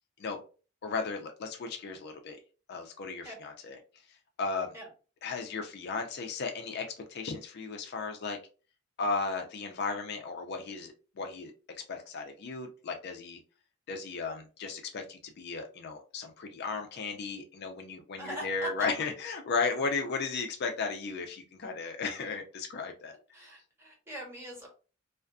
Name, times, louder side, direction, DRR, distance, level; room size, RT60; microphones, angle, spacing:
voice 1, 0.8-2.4 2.7-3.8 4.4-4.7 5.2-8.4 9.0-11.5 11.9-13.4 13.9-23.5, left 4 dB, 55° left, 4 dB, 0.4 m, -35 dB
voice 2, 18.2-18.9 23.3-24.7, equal, 15° right, -2 dB, 1.0 m, -41 dB
2.4 x 2.4 x 2.3 m, 0.35 s
head